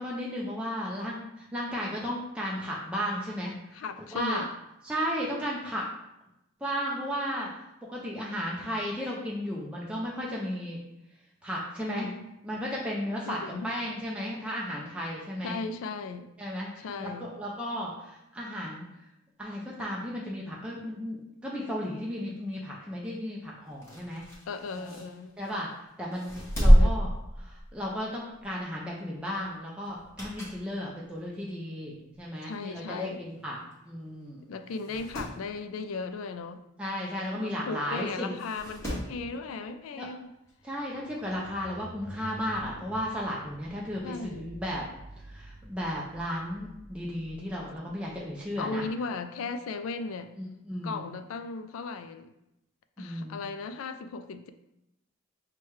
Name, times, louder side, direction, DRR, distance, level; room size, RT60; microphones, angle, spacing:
voice 1, 0.0-3.6 4.1-4.4 4.8-5.9 6.6-7.5 7.9-10.8 11.4-12.1 12.4-13.4 13.6-15.6 16.4-18.8 19.4-24.3 24.7-24.9 25.4-25.7 26.0-27.1 27.7-33.6 33.9-34.5 36.8-38.4 40.0-40.1 40.6-44.8 45.3-48.8 50.4-51.0 53.0-53.4, equal, 5° right, -4 dB, 0.4 m, -34 dB
voice 2, 3.7-4.5 11.8-12.3 13.3-13.7 15.4-16.3 16.8-17.3 24.4-25.4 26.8-27.1 32.4-33.2 34.5-36.6 37.4-40.3 44.0-44.5 48.6-50.3 50.8-52.3 53.0-54.5, left 4 dB, 80° left, 9 dB, 0.3 m, -36 dB
sound 1, 23.7-25.6 26.1-28.0 28.4-28.6 29.9-30.7 31.1-31.2 32.1-32.2 32.5-32.6 32.7-32.8 33.7-33.9 34.2-34.3 34.7-35.4 37.2-37.3 38.4-39.2 40.5-40.6, equal, 15° left, 1.0 m, -26 dB
sound 2, 40.5-48.9, right 1 dB, 45° right, 0.6 m, -49 dB
6.2 x 2.2 x 3.0 m, 0.87 s
head